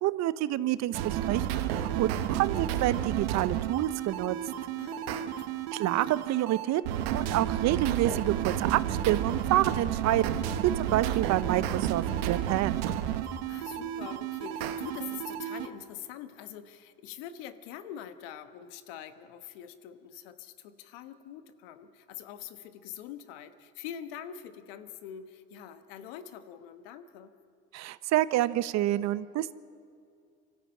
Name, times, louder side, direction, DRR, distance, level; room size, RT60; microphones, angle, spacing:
voice 1, 0.0-4.4 5.8-6.8 7.1-10.4 10.8-12.8 27.7-29.5, right 14 dB, 65° right, 16 dB, 0.8 m, -28 dB
sound 1, 0.9-15.7, right 10 dB, 90° right, 1.0 m, -31 dB
voice 2, 4.8-5.5 13.2-27.3, left 10 dB, 85° left, 10 dB, 1.2 m, -44 dB
24.5 x 13.5 x 8.8 m, 2.3 s
supercardioid pair, 70°, 29 cm